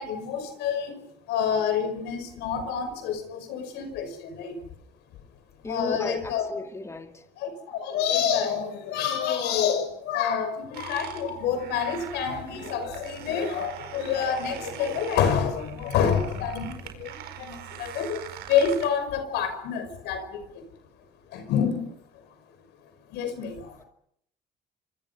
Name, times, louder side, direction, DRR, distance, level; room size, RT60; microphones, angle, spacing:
voice 1, 0.0-4.6 5.7-6.5 7.4-20.6 21.3-21.9 23.1-23.8, left 7 dB, 85° left, 5.4 m, -28 dB
voice 2, 5.6-7.3, left 3 dB, 15° left, 2.1 m, -35 dB
sound 1, 10.7-18.9, right 11 dB, 80° right, 4.9 m, -42 dB
27.5 x 25.0 x 5.6 m
cardioid pair, 110°, 17 cm